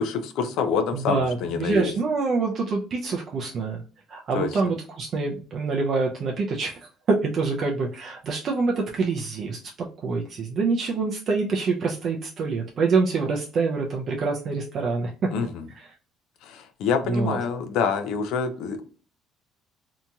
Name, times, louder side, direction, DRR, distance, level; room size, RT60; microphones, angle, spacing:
voice 1, 0.0-1.9 4.3-4.6 15.3-15.7 16.4-18.8, left 6 dB, 80° left, 8 dB, 0.4 m, -26 dB
voice 2, 0.9-3.8 4.1-15.1 15.8-15.9 17.1-17.4, right 4 dB, 50° right, 0 dB, 0.4 m, -26 dB
2.8 x 2.7 x 2.2 m, 0.39 s
cardioid pair, 110°, 0 cm